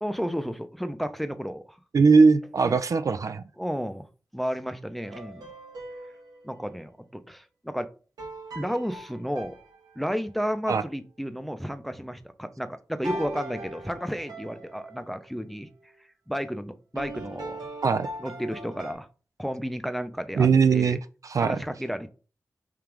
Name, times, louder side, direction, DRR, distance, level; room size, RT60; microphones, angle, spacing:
voice 1, 0.0-1.8 2.6-2.8 3.6-4.1 4.3-5.5 6.4-7.9 8.5-9.6 10.0-15.7 16.3-17.7 18.2-19.1 19.4-21.0 21.4-22.1, equal, ahead, 9 dB, 0.5 m, -32 dB
voice 2, 1.9-3.4 10.7-10.8 17.8-18.1 20.4-21.0 21.2-21.6, right 5 dB, 60° right, 11 dB, 0.3 m, -20 dB
sound 1, 5.0-6.6 8.2-10.4 13.0-15.1 16.9-18.9, right 1 dB, 85° right, 1.0 m, -40 dB
3.5 x 2.4 x 4.5 m, 0.36 s
cardioid pair, 50°, 7 cm